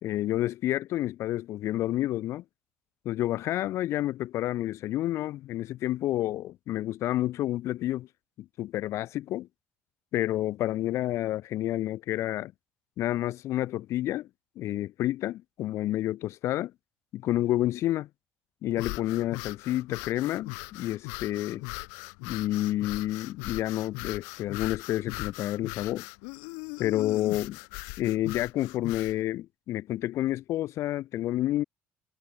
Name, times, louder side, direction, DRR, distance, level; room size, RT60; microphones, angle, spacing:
voice 1, 0.0-2.4 3.1-8.1 8.6-9.5 10.1-12.5 13.0-14.3 14.6-16.7 17.1-18.1 18.6-21.6 22.3-26.0 26.8-27.6 28.0-31.6, left 14 dB, 65° left, 1.9 m, -29 dB
sound 1, 18.7-29.2, left 37 dB, 85° left, 1.1 m, -39 dB
supercardioid pair, 80°, 5 cm